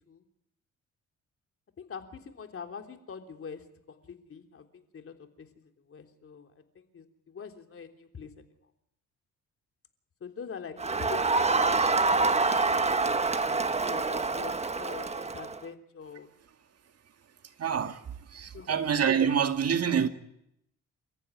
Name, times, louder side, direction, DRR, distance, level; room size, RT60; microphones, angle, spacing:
voice 1, 1.8-8.3 10.2-12.6 13.5-16.3 18.5-18.8, left 6 dB, 45° left, 3.5 m, -44 dB
Crowd, 10.8-15.6, right 3 dB, 20° right, 1.3 m, -26 dB
voice 2, 17.6-18.0 18.3-20.1, right 7 dB, 55° right, 2.0 m, -26 dB
29.5 x 14.5 x 9.8 m
cardioid pair, 90°, 30 cm